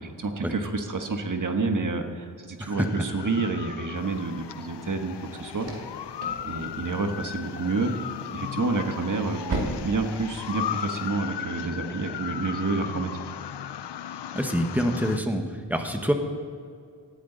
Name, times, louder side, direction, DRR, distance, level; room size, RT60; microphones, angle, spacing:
voice 1, 0.0-5.7 6.4-7.9 8.3-13.1, right 3 dB, 45° right, 5 dB, 1.4 m, -29 dB
sound 1, 2.7-15.2, left 10 dB, 75° left, 0.6 m, -36 dB
sound 2, 4.0-11.1, right 1 dB, 65° right, 2.4 m, -39 dB
voice 2, 14.3-15.4 15.7-16.1, equal, 5° right, 4 dB, 1.3 m, -26 dB
19.0 x 13.5 x 4.0 m, 2.3 s
wide cardioid pair, 120°, 42 cm